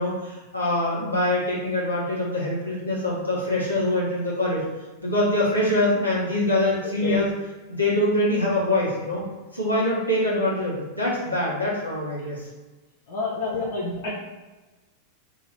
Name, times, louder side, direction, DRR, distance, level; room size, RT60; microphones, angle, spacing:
voice 1, 0.0-4.6 5.0-7.3 7.7-9.2 9.5-12.5, left 1 dB, 85° left, -6 dB, 1.3 m, -24 dB
voice 2, 13.1-14.2, left 3 dB, 55° left, -4 dB, 0.7 m, -28 dB
3.1 x 2.8 x 4.2 m, 1.2 s
figure-of-eight pair, 90°, 0 cm